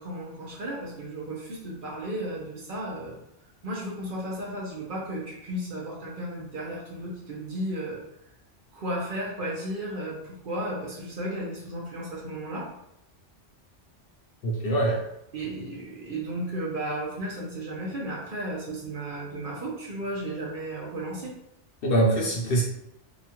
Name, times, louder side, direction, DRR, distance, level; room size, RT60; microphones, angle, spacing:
voice 1, 0.0-3.2 3.6-8.0 8.7-12.7 15.3-21.3, right 1 dB, 50° right, -4 dB, 0.8 m, -34 dB
voice 2, 14.4-15.0 21.8-22.6, right 1 dB, 60° left, -1 dB, 0.7 m, -23 dB
2.9 x 2.3 x 2.8 m, 0.82 s
omnidirectional pair, 1.2 m